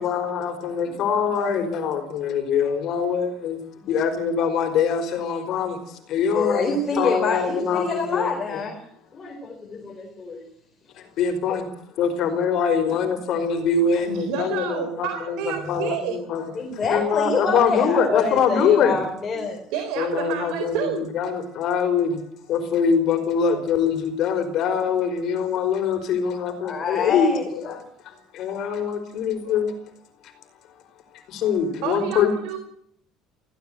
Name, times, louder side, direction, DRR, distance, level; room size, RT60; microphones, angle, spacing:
voice 1, 0.0-3.6 3.9-8.6 10.9-11.7 12.0-16.5 16.9-19.0 20.0-22.2 22.5-29.8 30.2-30.3 31.3-32.3, left 6 dB, 50° left, 7 dB, 4.8 m, -24 dB
voice 2, 6.3-8.8 9.1-10.5 11.5-11.6 13.9-14.0 16.6-19.6 26.6-27.7, left 4 dB, 25° left, 3 dB, 4.2 m, -27 dB
voice 3, 14.1-16.5 19.3-19.4 19.7-21.1 29.5-29.6 31.8-32.6, right 9 dB, 75° right, 6 dB, 4.1 m, -30 dB
20.5 x 16.5 x 7.9 m, 0.67 s
cardioid pair, 145°, 0 cm